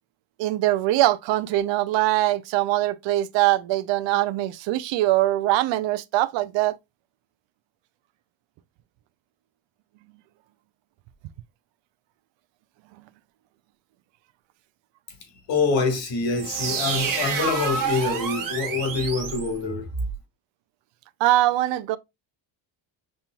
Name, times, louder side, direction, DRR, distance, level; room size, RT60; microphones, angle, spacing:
voice 1, 0.4-6.8 21.2-22.0, right 15 dB, 65° right, 0.5 m, -22 dB
voice 2, 15.5-19.9, left 4 dB, 65° left, 1.8 m, -25 dB
sound 1, 16.4-20.2, right 5 dB, 45° right, 1.4 m, -28 dB
5.4 x 2.9 x 2.2 m
cardioid pair, 105°, 47 cm